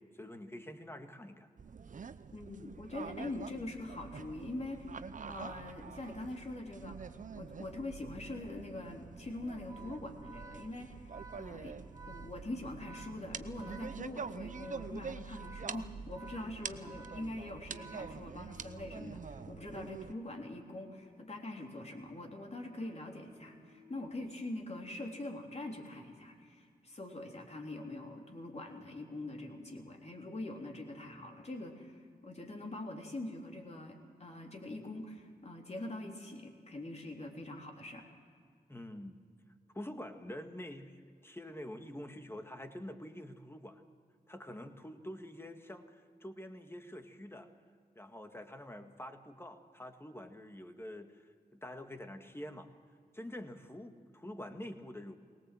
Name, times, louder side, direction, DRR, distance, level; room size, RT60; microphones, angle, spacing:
voice 1, 0.1-1.5 38.7-39.2 39.7-43.8 44.3-47.5 47.9-52.7 53.1-55.2, left 1 dB, 15° left, 6 dB, 1.8 m, -46 dB
sound 1, 1.6-20.1, right 5 dB, 50° right, 0.7 m, -46 dB
voice 2, 2.3-7.0 7.3-11.8 12.1-38.0, left 2 dB, 40° left, 1 dB, 3.5 m, -43 dB
Organ, 9.6-18.7, right 4 dB, 20° right, 1.7 m, -54 dB
sound 2, 13.6-14.7 15.5-20.0 20.7-24.1, left 2 dB, 90° left, 5.9 m, -63 dB
20.0 x 18.5 x 7.7 m, 2.2 s
cardioid pair, 55°, 17 cm